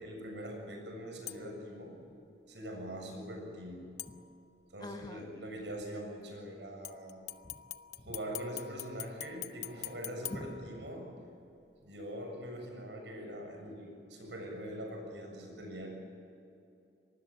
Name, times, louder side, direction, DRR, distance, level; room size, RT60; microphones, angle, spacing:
voice 1, 0.0-2.0 2.5-3.9 4.7-7.2 8.0-11.1 11.8-15.9, equal, 85° right, 2 dB, 7.4 m, -43 dB
sound 1, 1.3-1.7 4.0-4.7 6.8-11.2 11.7-11.8, left 13 dB, 75° left, 0.8 m, -45 dB
voice 2, 4.8-5.2 7.4-7.6 10.3-10.7, left 1 dB, 25° left, 8 dB, 1.0 m, -44 dB
25.0 x 20.0 x 7.8 m, 2.7 s
head